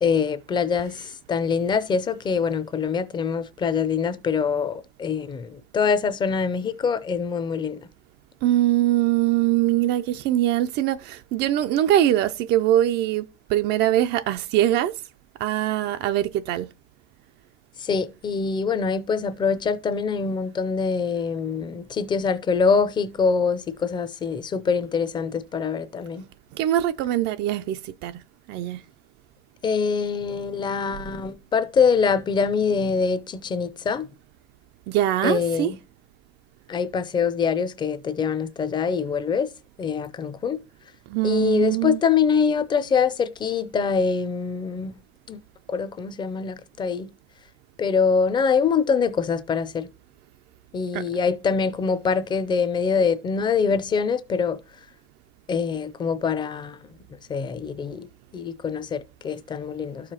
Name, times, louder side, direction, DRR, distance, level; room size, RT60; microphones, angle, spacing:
voice 1, 0.0-1.0 1.3-7.9 17.8-26.3 29.6-34.1 35.2-35.8 36.7-39.5 39.8-40.6 41.2-45.0 45.3-45.4 45.7-47.1 47.8-49.9 50.7-54.6 55.5-56.9 57.3-58.1 58.3-60.1, left 5 dB, 20° left, 0.5 m, -24 dB
voice 2, 8.4-15.0 15.4-16.7 26.6-28.1 28.5-28.8 34.9-35.7 41.1-42.0 50.9-51.0, right 13 dB, 55° right, 0.4 m, -22 dB
12.5 x 4.9 x 2.9 m
cardioid pair, 155°, 21 cm